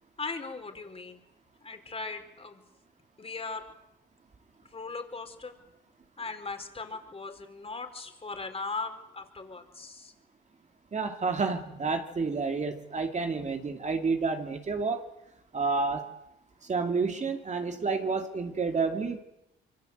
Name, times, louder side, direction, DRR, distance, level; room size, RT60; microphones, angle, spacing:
voice 1, 0.2-1.2 1.6-2.6 3.2-3.6 4.7-5.5 6.2-10.1, left 3 dB, 30° left, 5 dB, 4.6 m, -38 dB
voice 2, 10.9-15.0 15.5-16.1 16.7-19.2, right 4 dB, 35° right, 5 dB, 2.6 m, -29 dB
27.0 x 24.0 x 8.1 m, 0.89 s
cardioid pair, 90°, 20 cm